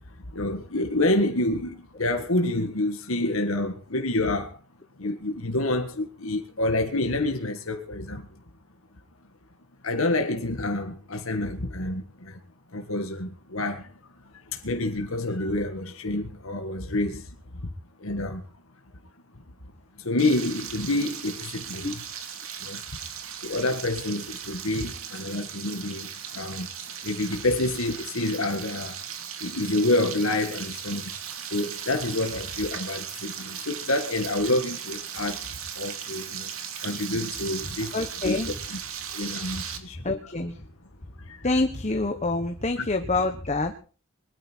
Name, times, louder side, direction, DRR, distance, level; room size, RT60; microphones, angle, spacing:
voice 1, 0.3-4.6 5.0-8.3 9.8-12.4 12.7-13.9 14.5-17.7 18.0-18.4 20.0-22.0 22.6-22.8 23.4-26.7 27.0-29.0 29.4-31.1 31.5-38.0 38.2-38.4 38.7-38.8 39.1-40.1 41.3-41.5 42.8-42.9, left 2 dB, 85° left, 1.8 m, -28 dB
Frying (food), 20.2-39.8, right 8 dB, 90° right, 2.7 m, -37 dB
voice 2, 37.9-38.5 40.0-40.6 41.4-43.7, left 2 dB, 35° left, 1.3 m, -26 dB
21.5 x 13.0 x 4.6 m
head